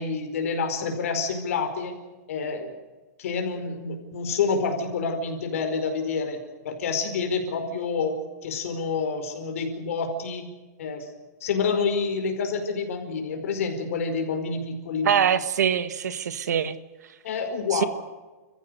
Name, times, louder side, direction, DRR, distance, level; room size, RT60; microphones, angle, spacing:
voice 1, 0.0-2.0 2.3-2.7 3.2-6.4 6.6-8.1 8.4-10.5 10.8-11.1 11.4-15.1 17.2-17.9, left 5 dB, 55° left, 5 dB, 4.9 m, -28 dB
voice 2, 15.0-16.8 17.7-17.8, right 8 dB, 80° right, 13 dB, 1.7 m, -23 dB
30.0 x 15.5 x 6.6 m, 1.3 s
supercardioid pair, 180°, 9 cm